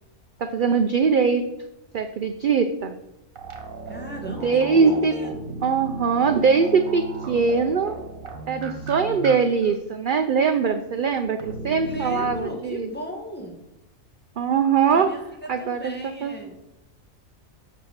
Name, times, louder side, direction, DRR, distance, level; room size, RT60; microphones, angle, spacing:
voice 1, 0.4-1.5 1.9-3.0 4.4-5.2 5.6-8.0 8.5-12.9 14.4-15.1 15.5-16.3, right 5 dB, 55° right, 8 dB, 0.6 m, -22 dB
sound 1, 3.4-9.4 9.6-9.7 11.4-12.4, right 2 dB, 85° right, 1.8 m, -36 dB
voice 2, 3.9-5.3 11.8-13.6 14.9-16.6, equal, 10° left, 0 dB, 1.5 m, -36 dB
6.5 x 6.3 x 7.3 m, 0.90 s
omnidirectional pair, 1.4 m